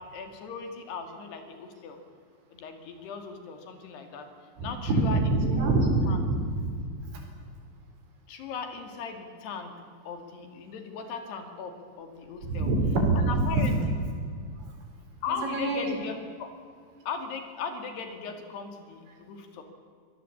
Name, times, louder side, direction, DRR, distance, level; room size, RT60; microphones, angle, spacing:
voice 1, 0.0-2.0 2.5-4.3 4.6-5.4 6.1-6.2 8.3-12.7 13.2-13.9 15.2-16.5 17.1-19.6, left 5 dB, 65° left, 6 dB, 4.2 m, -38 dB
voice 2, 5.1-6.7 12.4-13.7 15.5-16.0, right 2 dB, 80° right, 3 dB, 6.5 m, -25 dB
25.5 x 18.0 x 8.6 m, 2.2 s
omnidirectional pair, 5.3 m